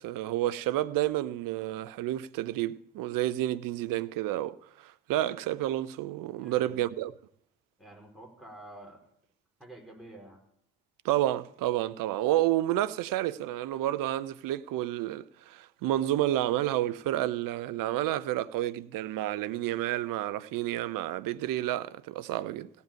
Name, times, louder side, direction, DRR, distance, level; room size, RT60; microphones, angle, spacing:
voice 1, 0.0-7.1 11.0-22.7, right 14 dB, 70° right, 0.7 m, -30 dB
voice 2, 6.4-6.9 7.8-9.0 9.6-10.4, right 1 dB, ahead, 5.0 m, -49 dB
16.5 x 5.5 x 9.1 m
hypercardioid pair, 50°, 35 cm